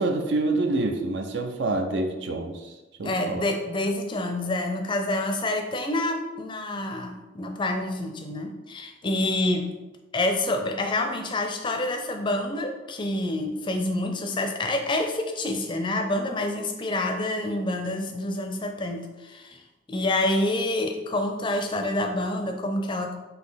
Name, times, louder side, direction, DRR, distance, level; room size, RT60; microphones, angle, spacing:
voice 1, 0.0-2.7 3.0-3.4, right 2 dB, 65° right, 4 dB, 0.5 m, -27 dB
voice 2, 3.0-9.7 10.1-19.6 19.9-23.1, left 1 dB, 25° left, 4 dB, 0.4 m, -27 dB
3.9 x 2.7 x 4.0 m, 1.1 s
head